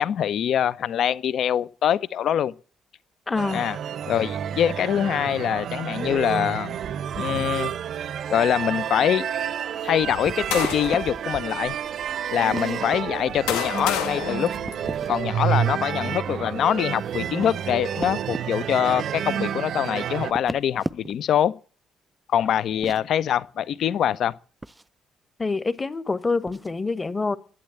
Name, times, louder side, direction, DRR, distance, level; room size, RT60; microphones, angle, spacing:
voice 1, 0.0-2.5 3.5-3.8 4.1-6.7 7.1-7.7 8.3-9.3 9.8-11.8 12.3-14.5 15.1-21.5 22.3-24.3, left 10 dB, 60° left, 0.6 m, -24 dB
voice 2, 3.3-3.7 25.4-27.4, left 3 dB, 25° left, 1.3 m, -26 dB
sound 1, 3.4-20.3, right 9 dB, 55° right, 0.6 m, -30 dB
sound 2, 10.0-11.2 11.9-12.1 13.0-15.3, left 9 dB, 75° left, 1.6 m, -30 dB
sound 3, 10.2-11.0 12.5-13.0 14.7-15.2 17.1-18.5 20.2-21.3 22.7-23.0 24.6-24.9 26.5-26.7, right 2 dB, 15° right, 0.6 m, -35 dB
11.5 x 8.8 x 9.0 m
hypercardioid pair, 45°, 0 cm